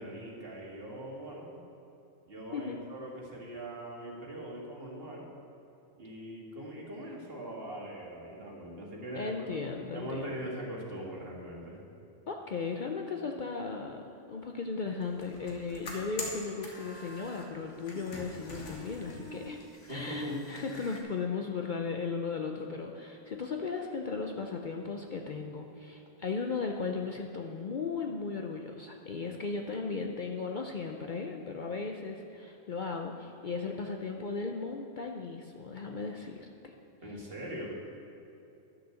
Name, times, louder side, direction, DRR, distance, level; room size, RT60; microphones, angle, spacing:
voice 1, 0.0-1.6 2.3-5.2 6.0-9.5 9.9-11.8 19.9-20.5 37.0-37.7, right 1 dB, 50° right, -2 dB, 2.0 m, -41 dB
voice 2, 9.2-10.3 12.3-19.6 19.9-36.7, left 4 dB, 50° left, 2 dB, 0.6 m, -36 dB
sound 1, 15.0-17.5 17.8-21.0, left 2 dB, 80° left, 1.9 m, -43 dB
11.5 x 6.5 x 6.9 m, 3.0 s
omnidirectional pair, 1.2 m